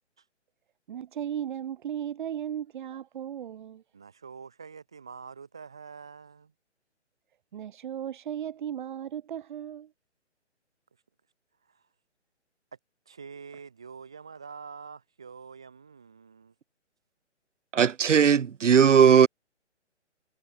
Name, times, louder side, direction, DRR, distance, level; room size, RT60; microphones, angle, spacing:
voice 1, 0.9-3.8 7.5-9.9, right 10 dB, 40° right, 6.6 m, -36 dB
voice 2, 3.9-6.5 11.7-11.8 13.1-16.5, right 6 dB, 5° right, 0.4 m, -46 dB
voice 3, 17.7-19.3, right 7 dB, 85° right, 0.7 m, -18 dB
figure-of-eight pair, 145°, 36 cm